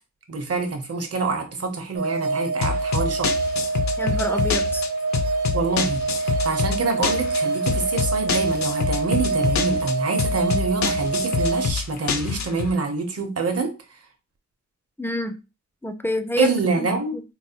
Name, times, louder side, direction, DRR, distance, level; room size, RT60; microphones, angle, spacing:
voice 1, 0.3-3.3 5.5-13.7 16.4-17.2, right 4 dB, 55° right, 0.8 m, -26 dB
sound 1, 1.9-11.7, right 3 dB, 90° right, 0.6 m, -25 dB
sound 2, 2.6-12.7, left 6 dB, 70° left, 0.5 m, -27 dB
voice 2, 4.0-4.8 15.0-15.4 15.8-16.5 16.8-16.9 17.1-17.2, left 1 dB, 10° left, 0.3 m, -27 dB
3.9 x 2.2 x 2.8 m
wide cardioid pair, 130°, 29 cm